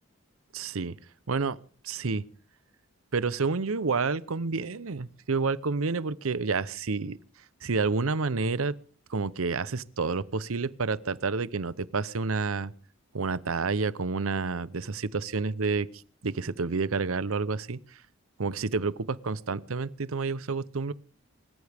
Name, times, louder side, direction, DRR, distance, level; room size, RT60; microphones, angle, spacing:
voice 1, 0.5-1.0 1.3-1.6 1.8-2.2 3.1-7.2 7.6-8.7 9.1-12.7 13.1-15.9 16.2-17.8 18.4-20.9, right 4 dB, 85° right, 0.7 m, -29 dB
25.0 x 14.5 x 3.5 m
head